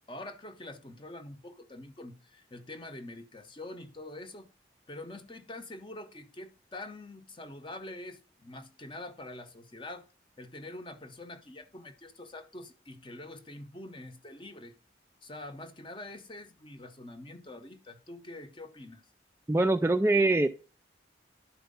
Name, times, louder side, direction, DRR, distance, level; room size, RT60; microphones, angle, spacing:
voice 1, 0.1-4.5 4.9-10.1 10.4-14.8 15.2-19.0, left 2 dB, 25° left, 0.8 m, -45 dB
voice 2, 19.5-20.5, right 2 dB, 15° right, 0.3 m, -23 dB
11.0 x 4.5 x 5.3 m
head